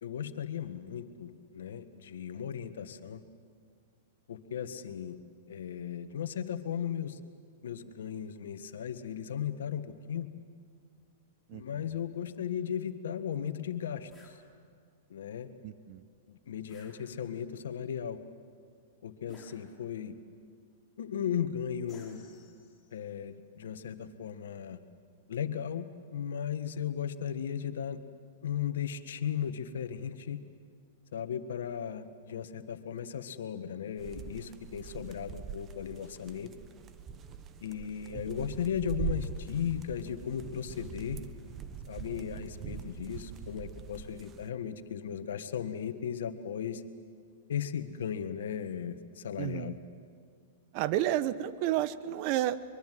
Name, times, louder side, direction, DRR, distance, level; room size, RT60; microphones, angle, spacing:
voice 1, 0.0-3.2 4.3-5.2 5.5-7.2 7.6-10.3 11.5-14.1 15.1-15.5 16.3-18.2 19.0-20.1 21.0-22.2 22.9-24.8 25.3-28.0 28.4-30.4 31.1-36.5 37.6-41.2 41.9-46.8 47.5-49.8, left 8 dB, 80° left, 10 dB, 1.5 m, -36 dB
voice 2, 11.5-11.9 15.6-16.0 38.1-38.4 49.3-49.8 50.7-52.6, right 13 dB, 45° right, 14 dB, 1.0 m, -31 dB
sound 1, 14.1-14.4 16.7-17.5 19.3-20.1 21.9-23.0, left 2 dB, ahead, 5.3 m, -58 dB
sound 2, 34.0-44.5, right 7 dB, 30° right, 1.3 m, -42 dB
24.0 x 23.0 x 7.7 m, 2.1 s
hypercardioid pair, 125°, 0 cm